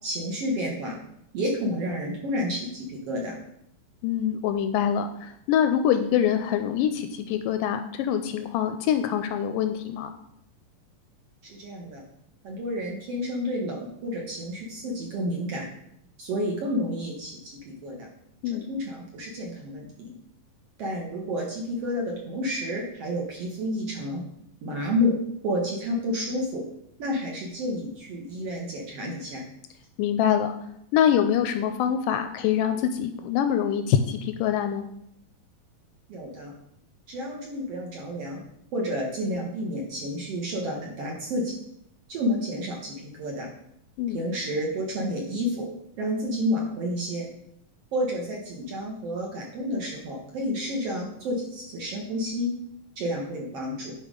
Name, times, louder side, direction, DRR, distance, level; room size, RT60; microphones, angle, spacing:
voice 1, 0.0-1.0 1.3-3.4 11.4-12.0 12.4-15.7 16.2-18.1 18.5-20.1 20.8-24.2 24.6-25.1 25.4-26.6 27.0-29.4 36.1-36.5 37.1-38.4 38.7-41.5 42.1-43.5 44.1-45.7 46.0-47.3 47.9-52.5 53.0-53.9, equal, 55° right, -1 dB, 1.8 m, -30 dB
voice 2, 4.0-10.1 18.4-18.6 30.0-30.6 30.9-34.9 44.0-44.2, left 9 dB, 80° left, 8 dB, 2.1 m, -24 dB
10.0 x 4.6 x 5.2 m, 0.77 s
omnidirectional pair, 4.1 m